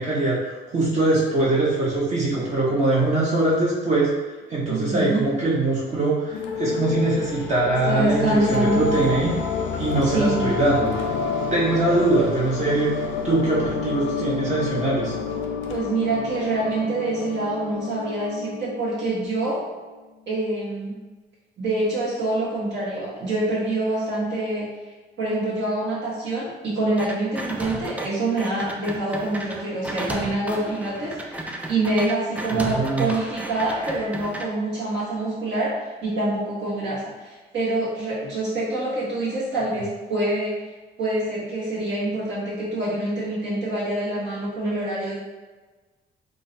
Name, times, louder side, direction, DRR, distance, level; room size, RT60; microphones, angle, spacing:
voice 1, 0.0-4.1 4.5-9.3 9.8-10.9 11.5-12.9 13.2-15.1 32.5-33.1, right 2 dB, 35° right, -6 dB, 0.7 m, -22 dB
voice 2, 4.7-5.2 7.8-8.9 10.0-10.4 15.7-19.6 20.3-20.9 21.6-24.7 25.2-35.7 36.0-40.5 41.0-45.1, right 2 dB, 65° right, -9 dB, 1.2 m, -26 dB
sound 1, 6.3-19.2, left 5 dB, 70° left, 0.4 m, -29 dB
sound 2, 27.0-28.1 28.4-34.5, right 1 dB, 5° right, 0.4 m, -34 dB
3.7 x 2.1 x 2.6 m, 1.3 s
cardioid pair, 90°, 20 cm